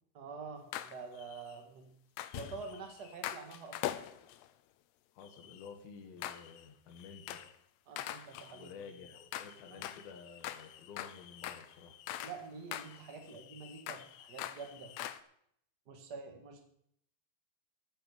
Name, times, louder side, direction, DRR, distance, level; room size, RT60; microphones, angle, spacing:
voice 1, 0.1-1.9 2.3-3.8 7.8-8.7 9.7-9.8 12.2-14.9 15.9-16.6, right 4 dB, 90° right, 4 dB, 0.9 m, -47 dB
sound 1, 0.7-1.6 2.2-4.5 5.2-5.7 6.2-6.7 7.0-7.6 8.0-12.4 12.7-15.2, left 13 dB, 90° left, 2.8 m, -44 dB
voice 2, 5.2-7.4 8.5-12.0, left 5 dB, 70° left, 2 dB, 3.7 m, -51 dB
12.5 x 10.5 x 5.5 m, 0.70 s
omnidirectional pair, 4.6 m